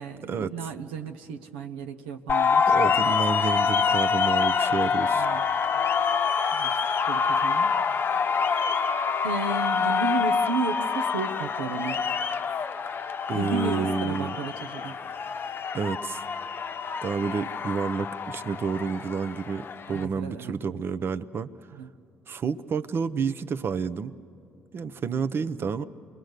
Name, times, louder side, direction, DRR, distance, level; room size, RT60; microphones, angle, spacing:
voice 1, 0.0-2.7 3.1-3.2 5.1-5.4 6.5-6.7 7.1-7.8 9.2-12.0 13.3-15.0 19.9-20.5 21.7-21.9, right 4 dB, 90° right, 6 dB, 0.7 m, -33 dB
sound 1, 2.3-20.1, left 5 dB, 45° left, 0.8 m, -26 dB
voice 2, 2.7-5.2 13.3-14.4 15.7-16.2 17.0-21.5 22.3-24.2 24.7-25.8, right 5 dB, 45° right, 13 dB, 0.7 m, -29 dB
28.0 x 21.5 x 6.6 m, 2.5 s
hypercardioid pair, 60°, 5 cm